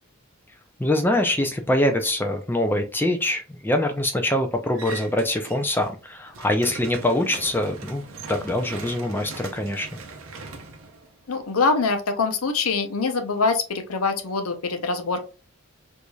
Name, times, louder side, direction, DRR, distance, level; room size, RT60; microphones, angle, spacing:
voice 1, 0.8-9.9, left 1 dB, 10° left, 6 dB, 0.4 m, -24 dB
sound 1, 4.7-5.9 6.2-11.6, right 3 dB, 70° right, 0.6 m, -40 dB
voice 2, 11.3-15.3, left 4 dB, 85° left, 6 dB, 0.7 m, -24 dB
4.6 x 2.6 x 2.3 m, 0.35 s
head